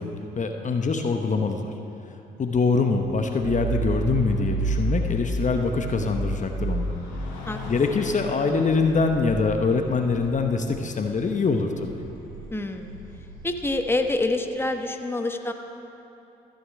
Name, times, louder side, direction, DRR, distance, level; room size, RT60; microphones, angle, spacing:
voice 1, 0.0-1.7 2.4-7.0 7.7-11.9, left 4 dB, 40° left, 5 dB, 1.0 m, -24 dB
sound 1, 3.0-13.2, left 5 dB, 80° left, 2.6 m, -44 dB
sound 2, 3.0-11.2 11.6-14.2, right 3 dB, 50° right, 3.6 m, -32 dB
voice 2, 12.5-13.0 13.4-15.5, left 2 dB, 10° left, 5 dB, 1.1 m, -26 dB
14.0 x 6.5 x 8.6 m, 2.8 s
hypercardioid pair, 50°, 20 cm